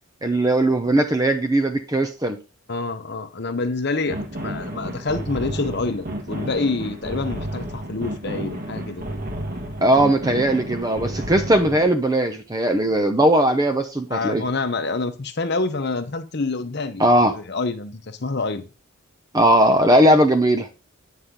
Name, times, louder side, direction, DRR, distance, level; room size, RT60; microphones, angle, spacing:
voice 1, 0.2-2.4 9.8-14.4 17.0-17.3 19.3-20.7, right 1 dB, 15° right, 7 dB, 0.6 m, -18 dB
voice 2, 2.7-4.2 4.4-9.0 14.1-18.7, left 3 dB, 50° left, 9 dB, 0.9 m, -27 dB
sound 1, 4.1-11.9, right 1 dB, 40° right, 1.4 m, -31 dB
9.7 x 5.7 x 3.7 m, 0.32 s
head